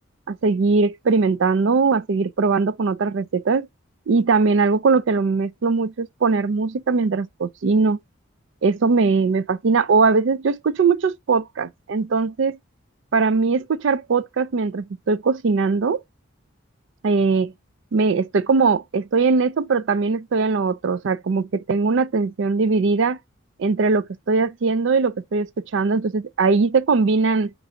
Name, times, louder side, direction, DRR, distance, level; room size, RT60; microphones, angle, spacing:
voice 1, 0.3-3.7 4.1-8.0 8.6-12.6 13.1-16.0 17.0-17.5 17.9-23.2 23.6-27.5, right 4 dB, 65° right, 0.4 m, -20 dB
4.5 x 2.5 x 3.9 m
head